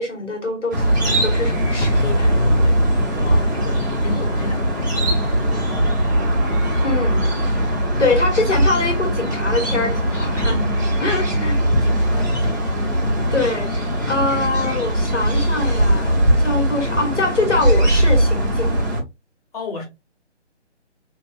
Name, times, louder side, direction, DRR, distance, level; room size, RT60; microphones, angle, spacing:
voice 1, 0.0-2.7 6.8-7.5 8.0-11.6 13.3-18.8, left 3 dB, 80° left, 2.0 m, -24 dB
sound 1, 0.7-19.0, equal, 15° right, 0.6 m, -20 dB
voice 2, 3.2-6.2 11.5-13.3 19.5-19.8, left 3 dB, 30° left, 1.5 m, -35 dB
2.9 x 2.8 x 2.5 m
figure-of-eight pair, 145°, 36 cm